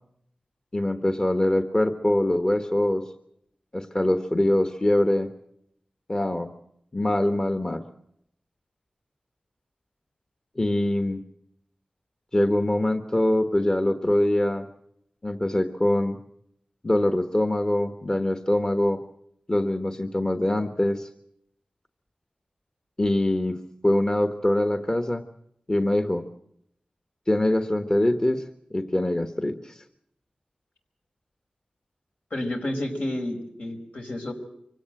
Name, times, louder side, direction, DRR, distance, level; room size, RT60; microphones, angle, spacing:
voice 1, 0.7-3.1 3.7-5.3 6.1-6.5 6.9-7.8 10.6-11.2 12.3-14.7 15.2-16.2 16.8-19.0 19.5-21.1 23.0-25.2 25.7-26.2 27.3-28.4 28.7-29.8, left 1 dB, 25° left, 7 dB, 1.3 m, -23 dB
voice 2, 32.3-34.3, left 1 dB, 75° left, 2 dB, 4.7 m, -30 dB
24.5 x 17.0 x 7.7 m, 0.74 s
wide cardioid pair, 65°, 3 cm